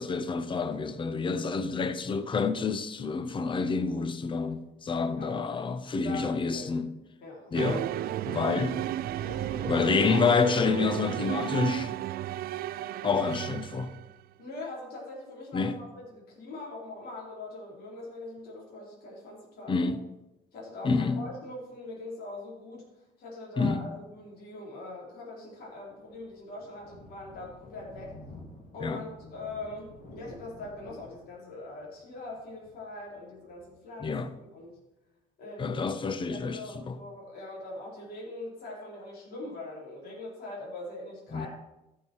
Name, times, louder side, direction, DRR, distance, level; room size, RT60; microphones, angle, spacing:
voice 1, 0.0-6.9 7.5-7.9 8.3-8.8 9.6-11.9 13.0-13.9 15.5-15.8 19.7-20.0 20.8-21.2 23.6-23.8 28.8-29.0 34.0-34.3 35.6-37.0 41.3-41.5, left 4 dB, 30° left, 0.8 m, -28 dB
voice 2, 6.0-6.7 7.2-7.6 9.2-9.9 14.4-20.0 20.5-22.8 23.2-28.1 28.7-34.2 34.5-34.8 35.4-35.9 36.3-41.5, left 2 dB, 65° left, 4.2 m, -42 dB
sound 1, 7.6-14.1, right 13 dB, 60° right, 0.4 m, -33 dB
Thunder, 25.5-34.7, left 1 dB, 45° left, 2.7 m, -51 dB
14.5 x 6.7 x 4.6 m
cardioid pair, 110°, 17 cm